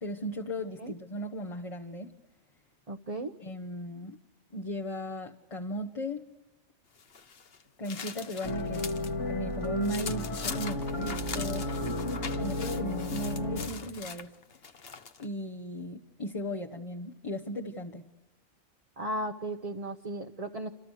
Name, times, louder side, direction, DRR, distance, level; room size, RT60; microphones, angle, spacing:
voice 1, 0.0-2.2 3.4-4.2 4.5-6.3 7.8-8.8 9.3-14.3 15.2-18.0, equal, 30° left, 1.1 m, -37 dB
voice 2, 2.9-3.3 19.0-20.7, right 1 dB, 35° right, 1.1 m, -35 dB
sound 1, 7.0-9.1 9.5-15.3, left 5 dB, 55° left, 1.3 m, -42 dB
sound 2, 8.4-13.7, left 2 dB, 80° left, 2.8 m, -33 dB
28.5 x 27.5 x 6.5 m
omnidirectional pair, 1.2 m